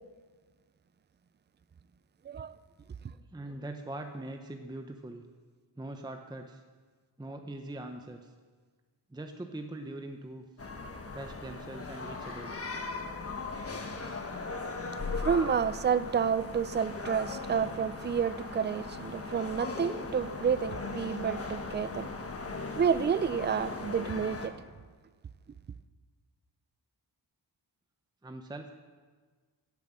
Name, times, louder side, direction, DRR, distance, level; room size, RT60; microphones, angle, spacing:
voice 1, 2.3-2.6 14.9-22.1 22.8-24.5, right 7 dB, 25° right, 0.3 m, -30 dB
voice 2, 3.1-5.3 5.8-6.6 7.2-8.3 9.1-10.4 11.1-12.5 28.2-28.7, right 1 dB, 10° right, 0.7 m, -42 dB
sound 1, 10.6-24.5, left 3 dB, 30° left, 1.3 m, -38 dB
16.5 x 9.3 x 7.4 m
wide cardioid pair, 150°, 45 cm